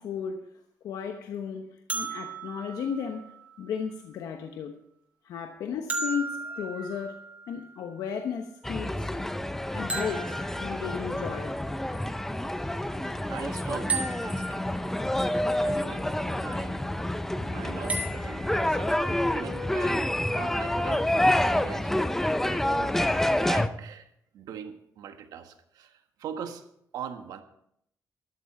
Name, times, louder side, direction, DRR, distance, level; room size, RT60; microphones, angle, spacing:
voice 1, 0.0-4.7 5.2-9.1 9.7-11.6, left 7 dB, 80° left, 1.1 m, -35 dB
sound 1, 1.9-3.9 5.9-7.7 9.9-11.3 13.9-15.2 17.9-18.4, right 3 dB, 25° right, 3.2 m, -35 dB
sound 2, 8.6-23.7, left 1 dB, 5° left, 0.6 m, -28 dB
voice 2, 13.3-14.7 15.4-16.9 17.4-22.1 22.5-23.0 23.3-24.1 24.3-26.6 26.9-27.4, right 8 dB, 80° right, 1.5 m, -41 dB
13.5 x 12.0 x 4.8 m
cardioid pair, 135°, 6 cm